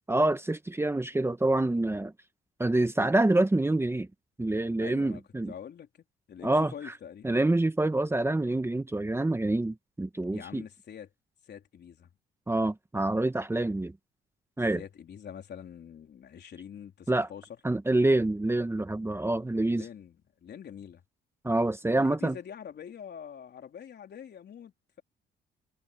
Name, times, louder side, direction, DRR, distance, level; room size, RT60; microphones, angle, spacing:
voice 1, 0.1-2.1 2.6-4.1 4.4-5.5 6.4-6.7 7.2-10.6 12.5-13.9 14.6-14.8 17.1-17.3 17.6-19.8 21.4-22.4, right 2 dB, 10° right, 1.1 m, -26 dB
voice 2, 4.8-5.9 6.3-7.3 10.3-11.1 11.4-12.1 14.8-17.5 19.6-21.0 21.9-25.0, left 8 dB, 60° left, 3.8 m, -45 dB
cardioid pair, 90°, 20 cm